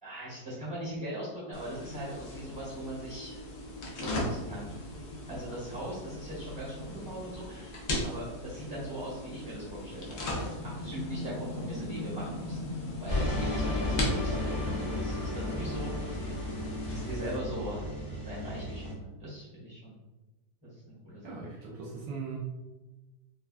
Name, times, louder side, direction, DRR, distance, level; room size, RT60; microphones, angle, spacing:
voice 1, 0.0-3.4 4.0-4.8 5.3-7.7 8.0-10.1 10.8-16.1 16.9-17.9 18.3-19.9 20.6-21.3, equal, 15° right, -10 dB, 0.8 m, -40 dB
sound 1, 1.5-17.4, left 1 dB, 80° left, 0.6 m, -38 dB
sound 2, 13.1-18.9, left 1 dB, 35° left, 0.6 m, -33 dB
voice 2, 21.2-22.4, right 4 dB, 80° right, -4 dB, 1.2 m, -39 dB
3.3 x 2.2 x 2.4 m, 1.1 s
omnidirectional pair, 1.9 m